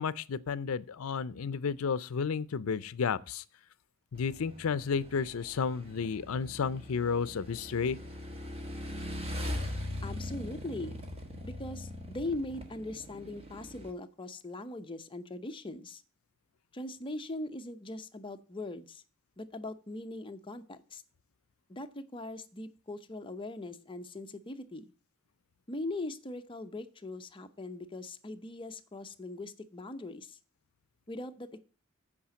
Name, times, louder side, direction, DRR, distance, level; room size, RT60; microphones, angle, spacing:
voice 1, 0.0-3.4 4.1-8.0, left 5 dB, 70° left, 0.5 m, -32 dB
Motorcycle / Engine, 4.1-13.9, left 1 dB, 30° right, 1.4 m, -41 dB
voice 2, 9.4-11.0 11.4-16.0 16.7-19.0 19.4-21.0 21.7-24.9 25.7-30.4 31.1-31.6, left 2 dB, 25° left, 0.7 m, -41 dB
8.6 x 5.0 x 7.5 m
head